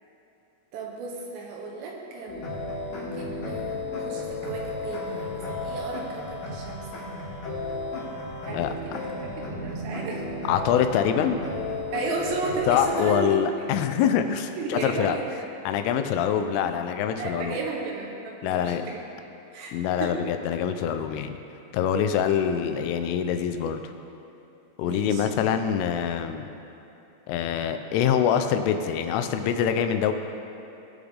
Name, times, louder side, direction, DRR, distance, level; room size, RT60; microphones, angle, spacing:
voice 1, 0.7-2.5 2.9-6.9 8.5-10.2 11.9-13.4 14.6-15.5 17.1-19.0 19.5-20.1 24.8-25.3, right 4 dB, 70° right, -1 dB, 3.1 m, -34 dB
sound 1, 2.3-13.2, left 2 dB, 50° left, 3.4 m, -33 dB
voice 2, 10.5-11.4 12.7-15.2 15.7-17.6 18.4-18.8 19.7-21.4 21.7-23.8 24.8-26.5 27.3-30.1, left 8 dB, 90° left, 8 dB, 3.2 m, -25 dB
20.5 x 6.9 x 3.7 m, 2.9 s
omnidirectional pair, 5.6 m